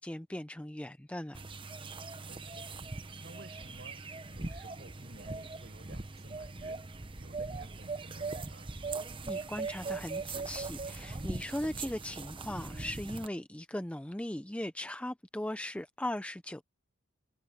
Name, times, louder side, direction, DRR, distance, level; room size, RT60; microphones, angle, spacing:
voice 1, 0.0-1.4 9.2-16.6, left 1 dB, 5° left, 0.4 m, -38 dB
sound 1, 1.3-13.3, right 3 dB, 25° right, 0.9 m, -40 dB
voice 2, 2.3-2.7 3.2-6.9 7.1-8.7, right 1 dB, 45° right, 6.4 m, -53 dB
head